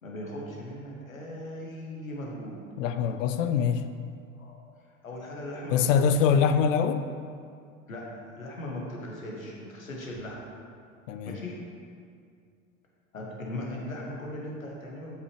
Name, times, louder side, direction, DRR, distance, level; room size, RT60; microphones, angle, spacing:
voice 1, 0.0-2.6 3.4-3.5 4.3-4.6 5.0-6.4 7.9-10.4 11.3-11.6 13.1-15.2, left 1 dB, 90° left, -2 dB, 1.5 m, -38 dB
voice 2, 2.8-3.9 5.7-7.0 11.1-11.3, left 7 dB, 70° left, 9 dB, 0.7 m, -24 dB
8.5 x 7.9 x 3.3 m, 2.2 s
hypercardioid pair, 80°, 40 cm